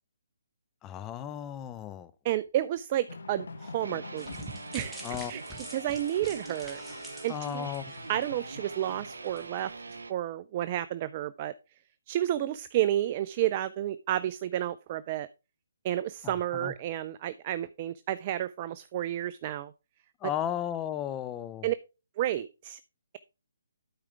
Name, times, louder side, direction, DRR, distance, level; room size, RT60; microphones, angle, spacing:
voice 1, 0.8-2.1 5.0-5.3 7.3-7.9 16.2-16.7 20.2-21.7, left 10 dB, 20° left, 0.5 m, -35 dB
voice 2, 2.2-4.3 4.7-5.0 5.3-5.4 5.7-6.8 7.2-7.7 8.1-9.7 10.1-11.5 12.1-15.3 15.8-19.7 21.6-21.8 22.2-22.8, right 13 dB, 35° right, 0.3 m, -31 dB
sound 1, 3.1-9.4, left 4 dB, 75° left, 1.0 m, -46 dB
sound 2, 3.8-10.1, right 3 dB, 80° right, 0.8 m, -43 dB
sound 3, 4.2-8.4 8.8-8.9 9.4-9.5, right 1 dB, 5° right, 1.5 m, -45 dB
12.0 x 4.9 x 3.3 m
hypercardioid pair, 145°, 0 cm